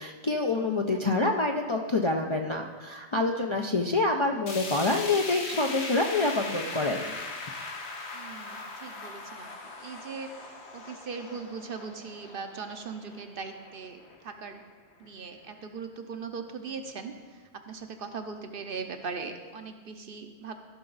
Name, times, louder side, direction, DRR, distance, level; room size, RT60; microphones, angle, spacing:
voice 1, 0.0-7.1, left 2 dB, 40° left, 1 dB, 0.4 m, -27 dB
voice 2, 0.9-1.3 3.8-4.0 8.1-9.5 9.8-10.3 10.7-14.6 15.0-20.5, right 5 dB, 60° right, 6 dB, 0.9 m, -40 dB
sound 1, 4.5-14.6 15.0-15.1 15.5-15.6 16.4-16.5, left 3 dB, 80° left, 1.4 m, -40 dB
15.0 x 5.7 x 4.0 m, 1.4 s
omnidirectional pair, 1.1 m